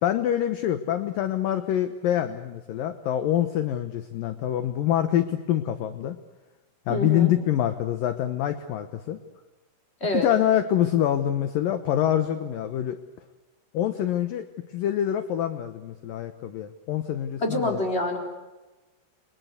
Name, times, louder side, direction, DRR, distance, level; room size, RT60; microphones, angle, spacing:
voice 1, 0.0-6.2 6.9-9.2 10.1-13.0 13.7-17.8, left 11 dB, 70° left, 10 dB, 2.3 m, -25 dB
voice 2, 6.9-7.3 10.0-10.3 17.4-18.2, left 1 dB, 15° left, 2 dB, 4.0 m, -26 dB
29.5 x 23.5 x 8.1 m, 1.1 s
omnidirectional pair, 5.2 m